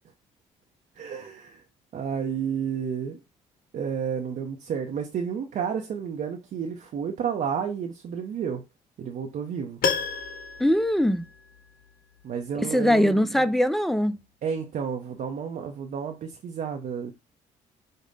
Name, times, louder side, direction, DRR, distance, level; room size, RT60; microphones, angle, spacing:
voice 1, 1.0-1.6 1.9-3.2 3.7-8.6 9.0-9.8 12.2-13.5 14.4-17.1, right 7 dB, 55° right, 0.6 m, -31 dB
Piano, 9.8-11.9 12.2-12.3, left 6 dB, 65° left, 0.7 m, -31 dB
voice 2, 10.6-11.2 12.5-14.2, equal, ahead, 0.4 m, -22 dB
5.2 x 2.1 x 3.9 m
supercardioid pair, 75°, 16 cm